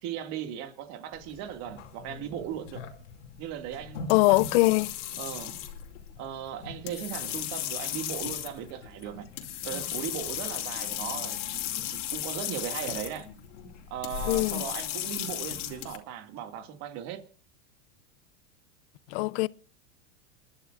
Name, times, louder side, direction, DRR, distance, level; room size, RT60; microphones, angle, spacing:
voice 1, 0.0-2.8 3.4-4.4 5.2-5.5 6.2-9.3 9.6-13.3 13.9-17.2, right 10 dB, 50° right, 2.1 m, -37 dB
sound 1, 1.1-16.0, left 11 dB, 75° left, 2.6 m, -36 dB
voice 2, 4.1-4.9 14.3-14.6 19.1-19.5, left 20 dB, 55° left, 0.6 m, -22 dB
28.5 x 11.5 x 2.5 m
supercardioid pair, 135°, 36 cm